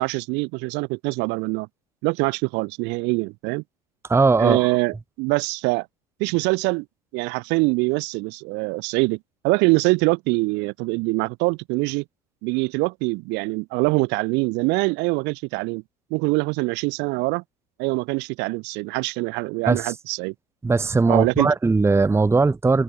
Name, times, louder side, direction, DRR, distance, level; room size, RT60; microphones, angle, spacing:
voice 1, 0.0-1.7 2.0-3.6 4.4-5.9 6.2-6.9 7.1-9.2 9.4-12.0 12.4-15.8 16.1-17.4 17.8-20.3 21.1-21.5, right 28 dB, 55° right, 1.6 m, -24 dB
voice 2, 4.1-4.7 19.7-19.8 20.6-22.8, right 3 dB, 10° right, 1.0 m, -19 dB
figure-of-eight pair, 70°, 21 cm